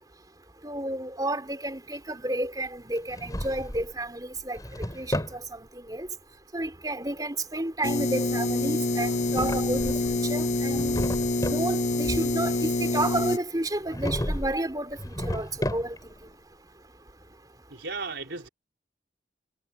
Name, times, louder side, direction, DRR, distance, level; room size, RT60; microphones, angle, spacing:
voice 1, 0.6-4.6 4.9-6.1 6.5-11.0 11.4-16.0, right 1 dB, 20° right, 4.2 m, -31 dB
Drawer open or close, 3.0-3.9 4.4-5.4 9.0-10.2 10.6-11.7 13.9-14.6 14.9-16.2, equal, 20° left, 6.5 m, -32 dB
sound 1, 7.8-13.4, left 2 dB, 40° left, 0.7 m, -26 dB
voice 2, 17.7-18.5, right 3 dB, 70° right, 3.8 m, -35 dB
head